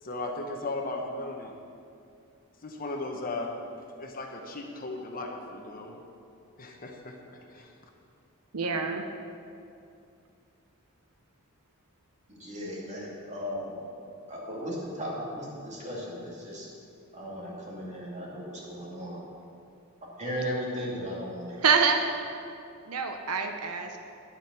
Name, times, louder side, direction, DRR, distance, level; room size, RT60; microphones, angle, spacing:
voice 1, 0.0-1.5 2.6-3.5 4.0-6.0 6.6-7.1 7.5-7.7, left 2 dB, 40° left, 2 dB, 1.1 m, -36 dB
voice 2, 8.5-9.0 21.6-22.0 22.9-24.0, right 5 dB, 80° right, 5 dB, 0.7 m, -26 dB
voice 3, 12.3-13.7 14.3-16.7 17.1-19.2 20.0-21.6, equal, 30° right, -4 dB, 2.4 m, -36 dB
10.0 x 7.5 x 6.1 m, 2.5 s
head